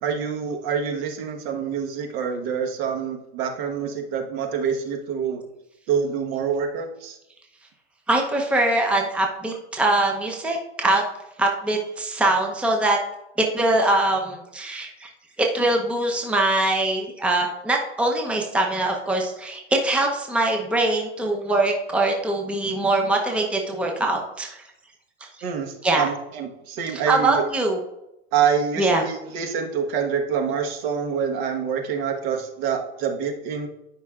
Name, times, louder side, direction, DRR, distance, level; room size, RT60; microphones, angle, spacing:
voice 1, 0.0-5.4 5.9-7.2 25.4-27.4 28.3-33.7, right 7 dB, 55° right, 3 dB, 1.4 m, -26 dB
voice 2, 8.1-11.0 11.4-13.0 13.5-15.1 15.4-24.6 25.2-25.3 25.8-26.1 27.1-27.8 28.8-29.0, right 2 dB, 5° right, 1 dB, 0.8 m, -22 dB
12.0 x 5.6 x 2.5 m, 0.88 s
hypercardioid pair, 120°, 35 cm